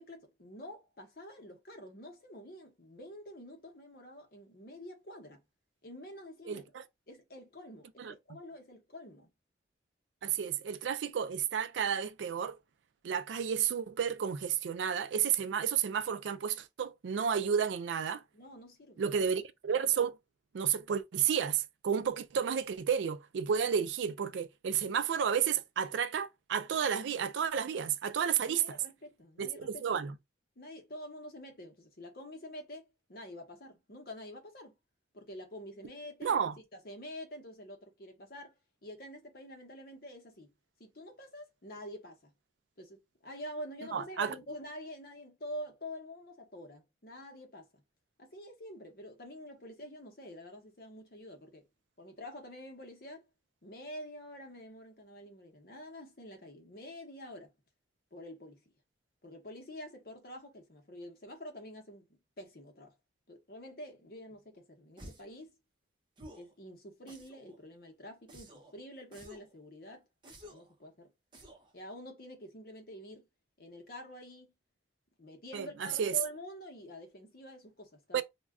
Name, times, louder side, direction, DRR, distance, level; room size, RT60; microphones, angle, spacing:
voice 1, 0.0-5.4 5.8-6.7 7.1-9.3 18.3-19.1 28.5-30.0 30.6-34.8 35.1-38.6 38.8-40.5 40.8-42.3 42.8-47.8 48.2-51.7 52.0-53.2 53.6-57.5 58.1-58.6 59.2-62.9 63.3-65.5 66.3-70.1 70.4-71.1 71.7-73.3 73.6-74.5 75.2-78.2, left 1 dB, 55° left, 0.8 m, -47 dB
voice 2, 10.2-12.6 13.0-18.2 19.0-20.2 20.5-28.8 29.4-30.1 36.2-36.5 43.9-44.4 75.5-76.1 78.1-78.2, right 7 dB, 85° right, 0.4 m, -31 dB
sound 1, 65.0-65.4 66.2-66.5 67.1-67.6 68.3-68.7 69.1-69.5 70.2-70.7 71.3-71.7, equal, 25° right, 0.6 m, -52 dB
2.3 x 2.2 x 3.5 m
head